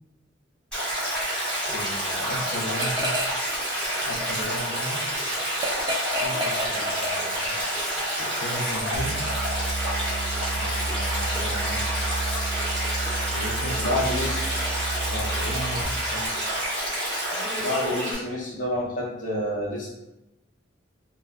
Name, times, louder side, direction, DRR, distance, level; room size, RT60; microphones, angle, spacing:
Stream, 0.7-18.1, equal, 5° left, 1.1 m, -28 dB
voice 1, 1.7-3.2 4.1-5.0 6.2-7.6 8.2-9.3 10.6-12.1 13.3-14.1 15.1-16.5, left 1 dB, 75° left, 2 dB, 0.5 m, -35 dB
sound 1, 2.7-3.5 3.8-7.6, equal, 20° right, 0.3 m, -31 dB
sound 2, 8.9-15.8, right 3 dB, 70° right, 0.6 m, -31 dB
voice 2, 13.8-14.4 17.6-19.9, left 1 dB, 40° left, -6 dB, 0.8 m, -28 dB
2.1 x 2.1 x 3.4 m, 0.95 s
head